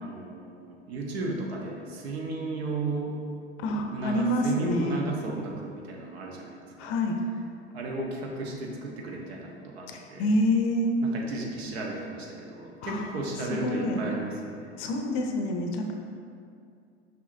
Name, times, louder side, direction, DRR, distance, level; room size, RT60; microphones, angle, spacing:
voice 1, 0.0-3.2 3.9-6.9 7.7-10.3 11.0-14.8, right 3 dB, 65° right, 0 dB, 1.0 m, -34 dB
voice 2, 3.6-5.0 6.8-7.2 9.9-11.0 12.8-13.0 13.6-14.0 14.8-15.9, left 1 dB, 40° left, 3 dB, 0.6 m, -27 dB
6.0 x 5.7 x 2.7 m, 2.4 s
figure-of-eight pair, 80°, 34 cm